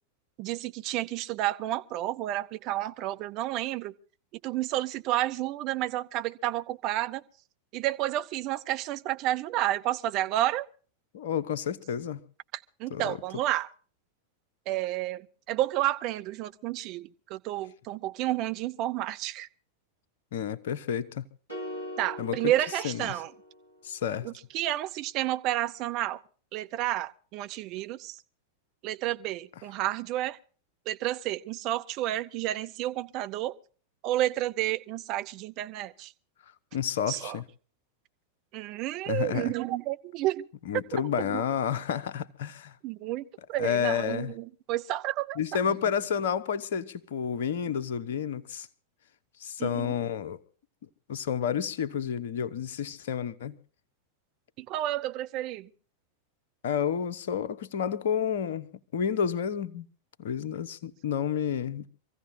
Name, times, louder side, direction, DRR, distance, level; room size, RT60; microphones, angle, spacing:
voice 1, 0.4-3.9 4.4-7.2 7.7-10.7 12.5-13.7 14.7-19.5 22.0-23.3 24.2-26.2 26.5-28.2 28.8-30.4 30.9-33.6 34.0-36.1 37.1-37.4 38.5-40.5 41.2-41.4 42.8-45.4 49.6-49.9 54.6-55.7, right 14 dB, 40° right, 0.8 m, -31 dB
voice 2, 11.1-12.2 12.9-13.2 20.3-21.2 22.2-22.5 22.8-23.1 23.8-24.3 36.7-37.4 39.1-39.5 40.7-42.7 43.6-44.3 45.4-48.7 49.4-50.4 51.1-53.6 56.6-59.9 60.2-61.9, left 8 dB, 55° left, 0.9 m, -30 dB
sound 1, 21.5-23.8, left 1 dB, 80° right, 3.8 m, -41 dB
26.0 x 15.5 x 2.7 m
figure-of-eight pair, 90°, 0 cm